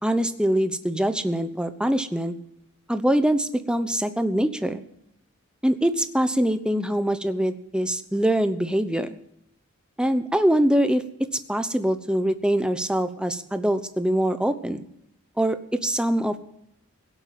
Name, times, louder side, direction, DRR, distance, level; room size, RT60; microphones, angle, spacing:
voice 1, 0.0-2.3 2.9-4.8 5.6-9.1 10.0-11.0 11.5-14.8 15.4-16.4, right 1 dB, 5° right, 10 dB, 0.9 m, -23 dB
16.5 x 8.1 x 7.6 m, 0.78 s
head